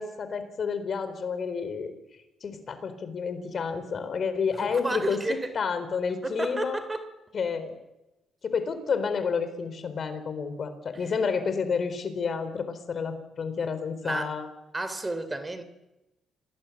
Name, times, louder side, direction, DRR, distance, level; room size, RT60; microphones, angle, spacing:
voice 1, 0.0-1.9 2.4-5.2 5.5-6.8 7.3-7.8 8.4-14.5, left 5 dB, 50° left, 11 dB, 4.1 m, -30 dB
voice 2, 4.5-5.5 6.2-7.1 10.9-11.1 14.0-14.4 14.7-15.6, right 2 dB, 20° right, 12 dB, 3.0 m, -32 dB
27.0 x 19.5 x 8.6 m, 0.98 s
cardioid pair, 90°, 0 cm